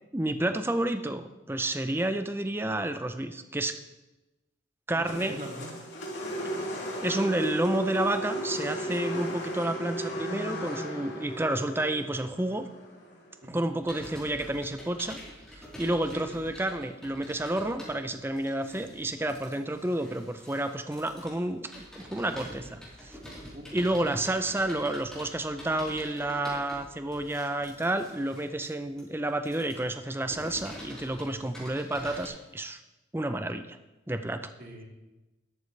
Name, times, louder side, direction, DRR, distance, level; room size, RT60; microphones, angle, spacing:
voice 1, 0.1-3.8 4.9-5.4 7.0-12.7 13.5-15.2 15.8-23.2 23.7-32.8 33.1-33.8 34.1-34.5, right 1 dB, 10° right, 9 dB, 0.5 m, -30 dB
voice 2, 4.9-5.7 13.4-13.6 16.1-16.2 23.3-24.3 31.9-32.1 34.6-34.8, right 1 dB, 45° right, 0 dB, 2.4 m, -43 dB
sound 1, 5.1-13.3, right 1 dB, 65° left, 3.3 m, -35 dB
Computer keyboard, 13.8-32.3, equal, 5° left, 3.5 m, -46 dB
12.5 x 12.5 x 3.3 m, 1.1 s
head